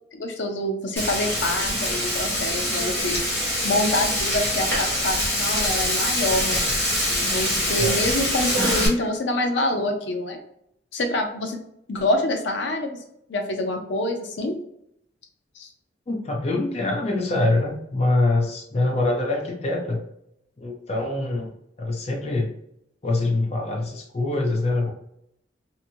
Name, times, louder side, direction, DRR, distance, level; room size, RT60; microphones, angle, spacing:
voice 1, 0.1-3.2 3.6-6.6 7.2-10.4 10.9-11.6 11.9-13.0 13.3-14.6 15.6-15.7, left 1 dB, 80° left, 4 dB, 0.6 m, -26 dB
Frying (food), 1.0-8.9, equal, 15° left, 1.1 m, -24 dB
voice 2, 16.1-20.0 20.6-21.5 21.8-22.5 23.0-24.9, left 2 dB, 35° left, 0 dB, 0.5 m, -24 dB
2.7 x 2.6 x 2.7 m, 0.75 s
head